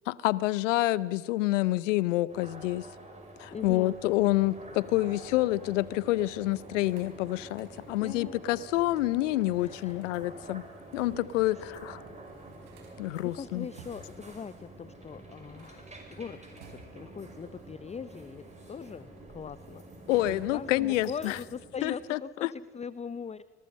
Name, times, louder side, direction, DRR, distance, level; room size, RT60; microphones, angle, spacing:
voice 1, 0.1-2.9 3.4-10.6 10.9-12.0 13.0-13.7 20.1-21.4 21.8-22.5, left 17 dB, 80° left, 21 dB, 0.7 m, -28 dB
sound 1, 2.3-21.4, right 2 dB, 20° right, 5.8 m, -50 dB
voice 2, 3.5-4.0 8.0-8.4 9.6-10.0 11.5-11.6 13.3-19.8 20.3-23.4, left 6 dB, 20° left, 17 dB, 0.5 m, -41 dB
Train, 4.0-21.9, right 1 dB, ahead, 7.5 m, -53 dB
sound 2, 6.5-8.2 9.4-11.4 11.8-11.9 12.1-14.3 15.4-17.2 18.0-19.2 19.6-20.9, right 5 dB, 80° right, 4.4 m, -56 dB
26.0 x 20.5 x 5.4 m, 1.4 s
hypercardioid pair, 60°, 37 cm